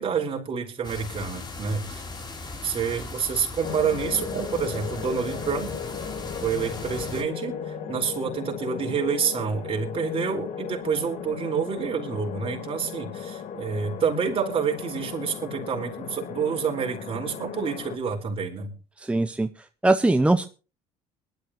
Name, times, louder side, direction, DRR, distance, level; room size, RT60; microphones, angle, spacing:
voice 1, 0.0-2.0 2.6-5.8 6.4-18.7, right 6 dB, 40° right, 2 dB, 4.6 m, -28 dB
sound 1, 0.8-7.2, left 3 dB, 30° left, 3.7 m, -38 dB
sound 2, 3.6-18.0, left 7 dB, 55° left, 1.6 m, -36 dB
voice 2, 19.0-19.5 19.8-20.5, right 2 dB, 10° right, 8 dB, 0.7 m, -21 dB
21.5 x 12.5 x 3.1 m, 0.34 s
supercardioid pair, 90°, 14 cm